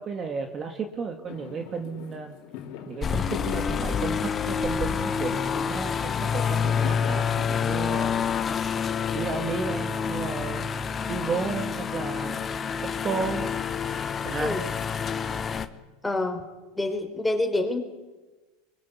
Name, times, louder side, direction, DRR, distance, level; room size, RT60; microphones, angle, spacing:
voice 1, 0.0-2.4 2.9-8.2 9.1-10.7 11.1-12.4 12.8-13.5 14.2-14.6, right 5 dB, 30° right, 5 dB, 2.0 m, -33 dB
Fireworks, 1.3-7.5, left 9 dB, 60° left, 3.2 m, -40 dB
sound 1, 3.0-15.7, left 6 dB, 25° left, 1.3 m, -28 dB
voice 2, 16.0-16.5 16.8-17.8, left 2 dB, 5° left, 4 dB, 4.0 m, -27 dB
23.0 x 21.5 x 8.4 m, 1.2 s
supercardioid pair, 120°, 0 cm